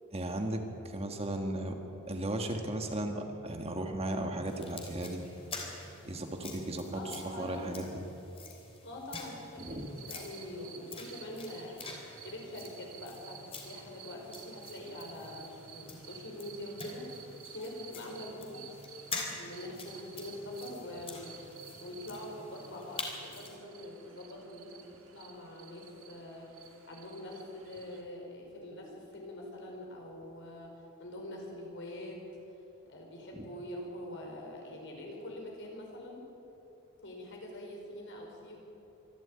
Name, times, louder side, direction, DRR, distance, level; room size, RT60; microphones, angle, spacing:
voice 1, 0.1-1.8 2.1-5.2 6.0-8.0 9.6-9.9 33.4-33.5, right 1 dB, 30° right, 4 dB, 1.7 m, -36 dB
sound 1, 4.5-23.6, left 3 dB, 30° left, 3.4 m, -47 dB
voice 2, 6.9-7.7 8.8-11.8 12.2-18.8 19.3-21.3 21.8-30.7 31.0-32.2 32.9-36.2 37.0-38.6, left 1 dB, 60° left, 0 dB, 4.9 m, -44 dB
sound 2, 9.5-28.0, right 7 dB, 80° right, 2.3 m, -53 dB
24.5 x 12.5 x 8.9 m, 2.9 s
head